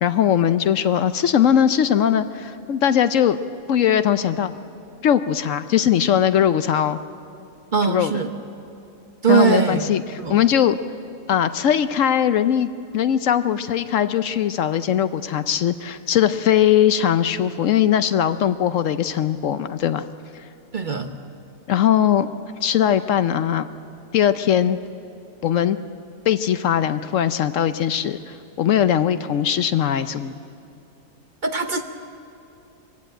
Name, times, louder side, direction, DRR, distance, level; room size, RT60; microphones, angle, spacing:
voice 1, 0.0-3.4 3.7-4.5 5.0-7.0 7.9-8.1 9.3-10.0 10.3-10.8 11.3-20.0 20.3-20.4 21.7-22.3 22.6-23.7 24.1-24.8 25.4-25.8 26.3-30.3, left 9 dB, 70° left, 12 dB, 1.0 m, -20 dB
voice 2, 7.7-8.3 9.2-9.8 10.2-10.4 20.7-21.1 31.4-31.8, right 5 dB, 35° right, 6 dB, 1.1 m, -20 dB
23.5 x 16.0 x 9.0 m, 2.8 s
omnidirectional pair, 1.5 m